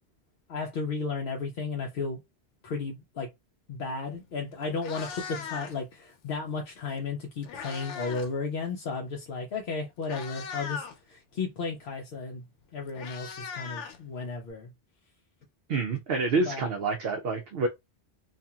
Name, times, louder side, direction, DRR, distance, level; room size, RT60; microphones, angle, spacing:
voice 1, 0.5-2.2 2.6-3.3 3.7-12.4 12.7-14.7 16.4-16.7, left 4 dB, 65° left, 0.7 m, -34 dB
Meow, 4.2-4.3 4.7-5.9 7.0-8.3 8.6-8.9 9.6-9.7 10.0-11.0 12.3-12.4 12.6-14.5, left 6 dB, 90° left, 0.9 m, -39 dB
voice 2, 15.7-17.7, right 3 dB, 65° right, 0.7 m, -27 dB
2.8 x 2.4 x 2.3 m
omnidirectional pair, 1.2 m